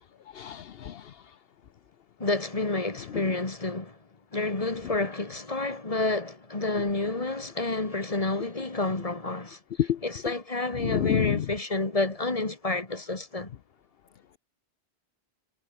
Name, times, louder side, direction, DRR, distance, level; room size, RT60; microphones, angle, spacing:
voice 1, 0.4-1.0 9.8-10.0 10.8-11.4, left 10 dB, 65° left, 0.9 m, -27 dB
voice 2, 2.2-4.0 4.3-13.5, left 2 dB, 35° left, 2.3 m, -29 dB
omnidirectional pair, 1.1 m